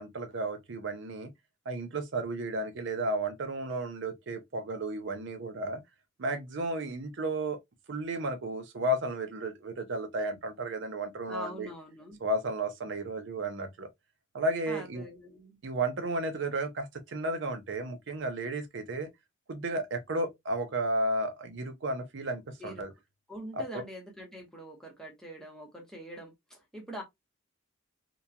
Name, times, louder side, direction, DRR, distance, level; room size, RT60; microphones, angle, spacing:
voice 1, 0.0-1.3 1.7-5.8 6.2-7.6 7.9-11.7 12.2-13.9 14.3-15.0 15.6-19.1 19.5-22.9 23.5-23.8, right 1 dB, 60° right, 0.5 m, -33 dB
voice 2, 11.3-12.2 14.7-15.6 22.6-22.8 23.3-27.0, equal, 5° left, 0.9 m, -44 dB
2.9 x 2.2 x 2.3 m
head